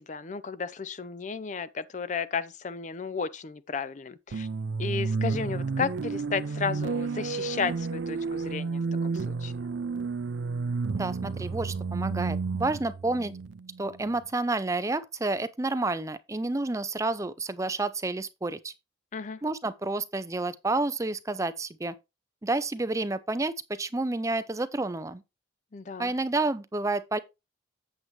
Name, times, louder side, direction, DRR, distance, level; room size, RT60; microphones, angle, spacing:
voice 1, 0.0-4.5 4.8-9.7 19.1-19.4 25.7-26.1, left 5 dB, 40° left, 0.5 m, -33 dB
sound 1, 4.3-14.2, right 4 dB, 75° right, 0.4 m, -31 dB
voice 2, 10.9-13.3 13.8-18.7 19.4-21.9 22.4-25.2 26.0-27.2, right 2 dB, 15° right, 0.5 m, -30 dB
8.1 x 7.2 x 3.1 m
head